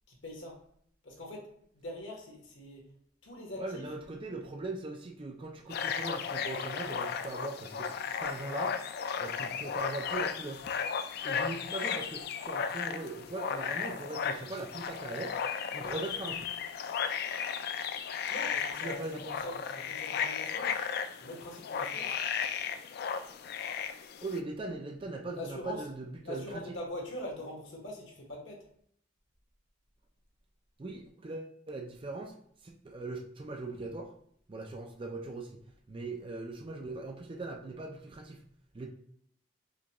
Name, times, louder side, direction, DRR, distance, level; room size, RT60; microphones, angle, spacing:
voice 1, 0.1-0.6 1.0-2.8 3.2-3.8 18.3-19.1 19.4-20.8 21.2-22.2 25.3-25.9 26.2-28.6, left 1 dB, 85° left, -1 dB, 1.3 m, -42 dB
voice 2, 3.6-7.9 8.2-8.8 9.2-10.6 11.2-15.4 15.7-16.5 18.8-19.4 24.2-26.8 30.8-32.3 32.6-34.1 34.5-35.5 35.9-38.4 38.7-38.9, right 2 dB, 30° right, 2 dB, 0.4 m, -40 dB
sound 1, 5.7-24.4, left 7 dB, 55° left, 0.3 m, -35 dB
4.9 x 2.3 x 2.9 m, 0.65 s
head